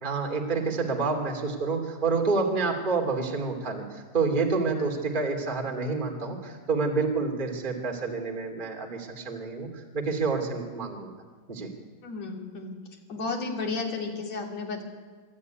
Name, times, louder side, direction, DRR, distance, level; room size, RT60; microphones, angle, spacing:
voice 1, 0.0-11.1 11.5-11.7, right 4 dB, 15° right, 1 dB, 1.7 m, -28 dB
voice 2, 12.0-12.7 13.1-14.8, left 3 dB, 40° left, 0 dB, 3.2 m, -32 dB
25.5 x 13.0 x 9.6 m, 1.5 s
omnidirectional pair, 5.4 m